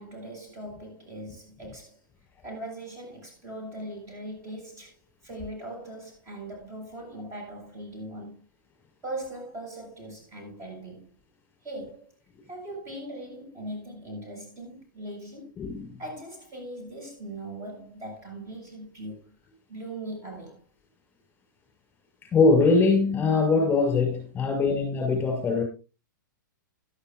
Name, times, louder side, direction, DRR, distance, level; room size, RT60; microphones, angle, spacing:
voice 1, 0.0-2.0 2.4-5.0 5.2-8.4 9.0-11.1 11.6-12.1 12.5-15.5 16.0-19.3 19.7-20.6, right 1 dB, 25° right, 7.6 m, -40 dB
voice 2, 15.6-16.0 22.3-25.6, left 4 dB, 15° left, 5.4 m, -22 dB
17.0 x 12.0 x 2.5 m
hypercardioid pair, 115°, 11 cm